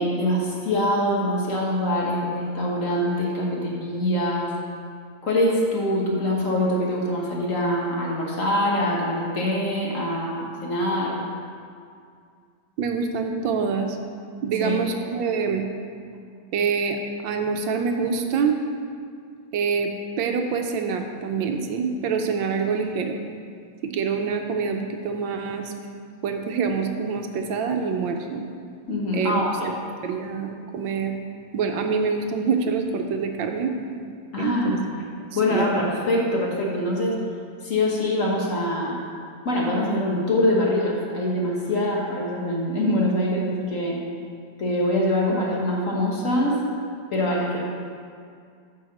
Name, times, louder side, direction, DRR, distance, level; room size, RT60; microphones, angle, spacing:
voice 1, 0.0-4.5 5.2-11.2 14.6-14.8 28.9-29.7 34.3-34.8 35.3-37.1 37.6-39.0 39.4-44.0 44.6-46.6 47.1-47.6, left 1 dB, 45° left, -3 dB, 1.3 m, -24 dB
voice 2, 12.8-14.0 14.4-15.6 16.5-17.0 17.2-18.6 19.5-23.2 23.8-25.7 26.2-28.4 29.1-29.7 30.0-31.1 31.5-33.7 34.4-34.8 35.3-35.9, right 5 dB, 75° right, 4 dB, 1.3 m, -26 dB
8.7 x 4.8 x 6.4 m, 2.2 s
omnidirectional pair, 2.2 m